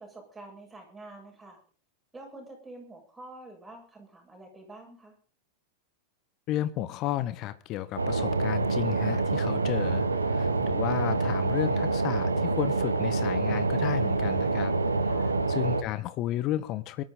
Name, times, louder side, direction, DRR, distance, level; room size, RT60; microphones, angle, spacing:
voice 1, 0.0-1.6 2.1-5.1 15.0-15.4, right 2 dB, 10° right, 7.8 m, -47 dB
voice 2, 6.5-14.7 15.5-17.0, left 13 dB, 40° left, 1.3 m, -32 dB
sound 1, 8.0-15.8, right 3 dB, 80° right, 1.4 m, -26 dB
23.0 x 13.0 x 3.9 m
figure-of-eight pair, 90°, 0 cm